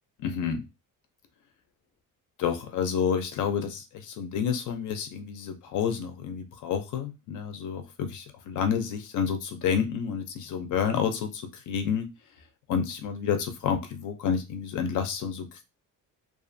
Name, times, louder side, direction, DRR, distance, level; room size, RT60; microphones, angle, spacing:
voice 1, 0.2-0.6 2.4-12.1 12.7-15.6, left 7 dB, 60° left, 6 dB, 0.5 m, -29 dB
2.4 x 2.4 x 2.5 m, 0.25 s
cardioid pair, 150°, 34 cm